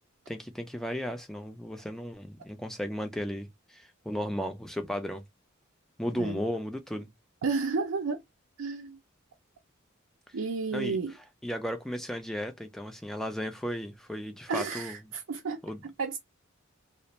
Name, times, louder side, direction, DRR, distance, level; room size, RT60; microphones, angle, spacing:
voice 1, 0.3-5.2 6.0-7.1 10.3-10.4 10.7-11.0 11.4-15.0 15.6-15.8, equal, ahead, 0.4 m, -35 dB
voice 2, 7.4-8.2 8.6-9.0 10.3-11.1 14.5-16.2, right 4 dB, 85° right, 0.5 m, -32 dB
2.4 x 2.1 x 2.9 m
head